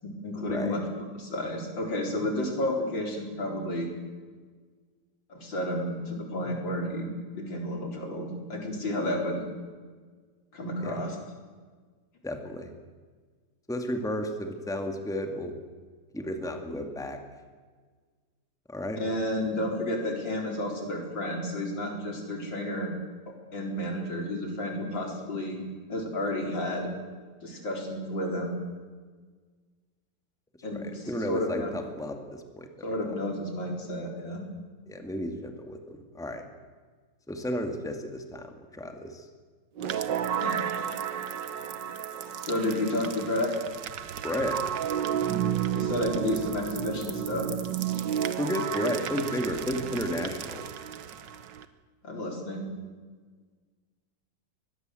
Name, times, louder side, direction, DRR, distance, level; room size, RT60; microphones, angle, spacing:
voice 1, 0.0-0.8 1.1-3.9 5.3-9.4 10.5-11.2 19.0-22.9 23.5-25.6 25.9-26.9 27.4-28.6 30.6-31.7 32.8-34.4 40.4-40.6 42.4-43.5 45.7-47.5 52.0-52.7, left 1 dB, 80° left, 2 dB, 4.8 m, -31 dB
voice 2, 12.2-12.7 13.7-15.5 16.1-17.2 18.7-19.0 30.7-32.9 34.9-36.4 37.3-38.5 38.7-39.2 44.2-44.6 48.4-50.6, left 1 dB, ahead, 5 dB, 2.1 m, -33 dB
sound 1, 39.8-51.6, right 9 dB, 70° right, 1.7 m, -32 dB
23.5 x 20.5 x 7.9 m, 1.5 s
omnidirectional pair, 2.0 m